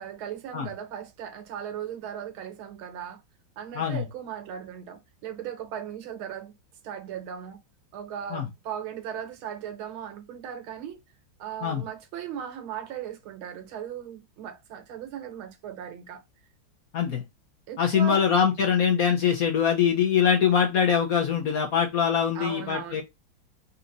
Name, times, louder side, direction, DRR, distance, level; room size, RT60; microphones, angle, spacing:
voice 1, 0.0-3.2 3.6-6.5 6.8-7.6 7.9-11.0 11.4-16.2 17.7-18.3 22.3-23.0, right 9 dB, 90° right, 1.8 m, -37 dB
voice 2, 17.8-23.0, left 7 dB, 60° left, 1.0 m, -23 dB
4.1 x 2.9 x 3.9 m
omnidirectional pair, 2.2 m